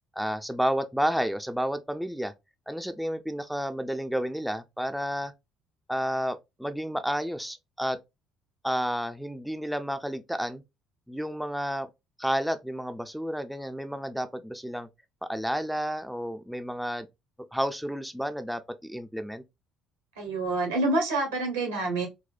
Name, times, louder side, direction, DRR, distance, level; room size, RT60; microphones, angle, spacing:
voice 1, 0.2-2.3 2.7-5.3 5.9-8.0 8.6-10.6 11.1-11.9 12.2-14.9 15.2-17.1 17.5-19.4, equal, ahead, 0.4 m, -31 dB
voice 2, 20.2-22.1, right 2 dB, 85° right, 1.2 m, -27 dB
4.1 x 2.1 x 2.4 m
hypercardioid pair, 55°, 0 cm